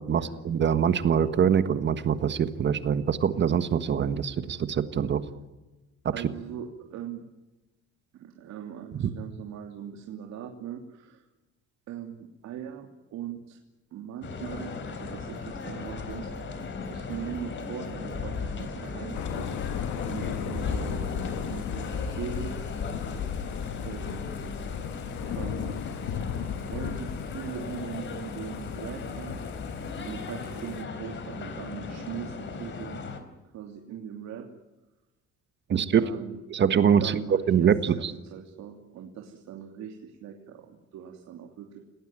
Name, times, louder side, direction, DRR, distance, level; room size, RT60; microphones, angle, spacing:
voice 1, 0.0-5.2 35.7-36.0 36.5-37.1 37.5-38.1, right 8 dB, 40° right, 11 dB, 1.5 m, -24 dB
voice 2, 6.1-7.3 8.1-11.3 11.9-13.6 13.9-16.6 16.9-19.5 20.1-22.6 23.8-24.4 25.2-25.8 26.6-29.4 30.0-33.0 33.5-34.5 35.7-36.4 36.8-41.8, right 9 dB, 65° right, 2 dB, 3.0 m, -40 dB
sound 1, 14.2-33.2, left 4 dB, 40° left, 3.9 m, -36 dB
sound 2, 15.3-27.4, equal, 15° left, 5.3 m, -47 dB
Thunder / Rain, 19.1-30.8, left 9 dB, 70° left, 2.0 m, -36 dB
29.0 x 18.5 x 9.0 m, 1.1 s
cardioid pair, 135°, 29 cm